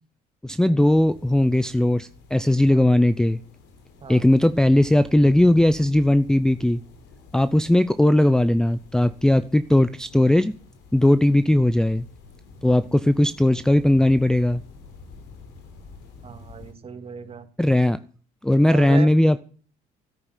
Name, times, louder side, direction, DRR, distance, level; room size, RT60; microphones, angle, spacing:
voice 1, 0.4-3.4 4.1-6.8 7.3-10.5 10.9-12.1 12.6-14.6 17.6-18.0 18.4-19.4, left 1 dB, 5° left, 11 dB, 0.6 m, -18 dB
sound 1, 0.8-16.7, left 4 dB, 85° left, 3.9 m, -48 dB
voice 2, 16.2-17.5 18.7-19.1, right 6 dB, 35° right, 8 dB, 2.4 m, -35 dB
13.5 x 9.5 x 8.1 m, 0.41 s
cardioid pair, 110°, 17 cm